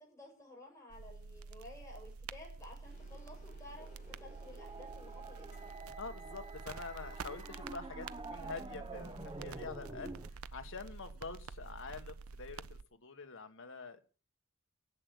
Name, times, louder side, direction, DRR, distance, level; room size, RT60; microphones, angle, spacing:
voice 1, 0.0-5.7, left 2 dB, 15° left, -2 dB, 7.5 m, -54 dB
sound 1, 0.9-12.8, right 4 dB, 75° right, 0.6 m, -48 dB
sound 2, 2.8-7.5, right 1 dB, 35° left, 6.0 m, -61 dB
sound 3, 3.8-10.3, right 3 dB, 25° right, 1.0 m, -48 dB
voice 2, 6.0-10.1 10.5-14.2, left 4 dB, 60° left, 8 dB, 1.4 m, -46 dB
11.0 x 8.1 x 8.2 m, 0.39 s
head